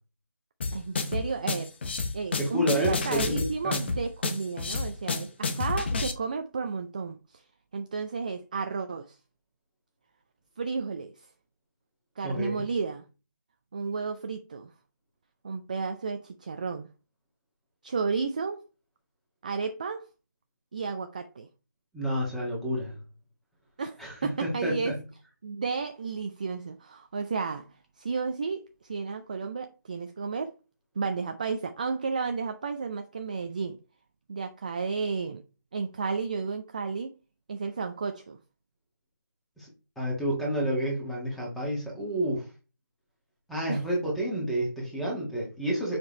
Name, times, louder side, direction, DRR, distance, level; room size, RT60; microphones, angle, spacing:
sound 1, 0.6-6.1, left 4 dB, 35° left, 0.9 m, -30 dB
voice 1, 0.7-1.7 2.1-7.4 7.7-9.2 10.6-11.1 12.2-13.0 13.7-14.7 15.4-16.9 17.8-18.6 19.4-20.1 20.7-21.5 23.8-25.0 25.4-27.7 28.0-30.5 31.0-33.8 34.3-35.4 35.7-37.1 37.5-38.4 43.7-43.8, right 5 dB, 25° right, 0.4 m, -32 dB
voice 2, 2.4-3.7 12.2-12.6 21.9-23.0 24.0-25.0 39.6-39.7 39.9-42.5 43.5-46.0, equal, ahead, 1.6 m, -30 dB
6.7 x 5.1 x 3.1 m
figure-of-eight pair, 160°, 10 cm